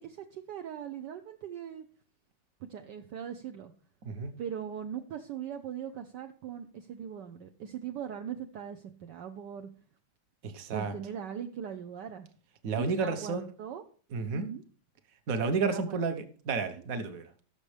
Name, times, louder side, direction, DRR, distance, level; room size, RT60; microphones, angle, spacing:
voice 1, 0.0-1.8 2.6-3.7 4.4-9.7 10.7-12.3 12.7-13.8 14.3-14.6 15.5-16.0, right 8 dB, 65° right, 6 dB, 1.3 m, -40 dB
voice 2, 4.0-4.3 10.4-10.9 12.6-13.5 14.1-14.5 15.3-17.2, right 4 dB, 50° right, 9 dB, 1.4 m, -31 dB
18.0 x 6.9 x 3.3 m, 0.41 s
omnidirectional pair, 2.2 m